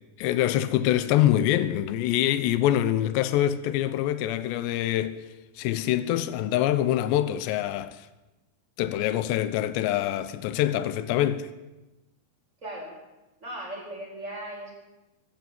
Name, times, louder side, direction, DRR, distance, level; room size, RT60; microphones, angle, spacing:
voice 1, 0.2-5.2 5.6-8.1 8.8-11.5, left 12 dB, 80° left, 3.2 m, -25 dB
voice 2, 12.6-12.9 13.4-14.7, right 1 dB, 15° right, 8.0 m, -37 dB
23.0 x 15.0 x 9.3 m
omnidirectional pair, 4.9 m